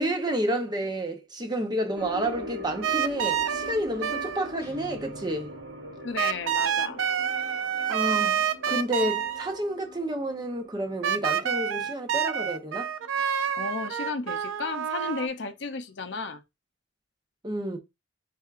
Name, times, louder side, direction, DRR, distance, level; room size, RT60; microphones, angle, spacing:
voice 1, 0.0-5.5 7.9-12.9 17.4-17.8, right 1 dB, 20° right, 0.7 m, -30 dB
sound 1, 2.0-14.5 14.8-14.9 15.4-15.5, equal, 65° right, 1.7 m, -43 dB
sound 2, 2.8-3.8 4.0-4.5 6.2-9.6 11.0-15.3, right 8 dB, 90° right, 0.5 m, -28 dB
sound 3, 4.6-6.6, left 1 dB, 10° left, 0.8 m, -48 dB
voice 2, 6.0-7.0 13.6-16.4, left 4 dB, 60° left, 0.5 m, -33 dB
4.4 x 3.4 x 2.4 m
head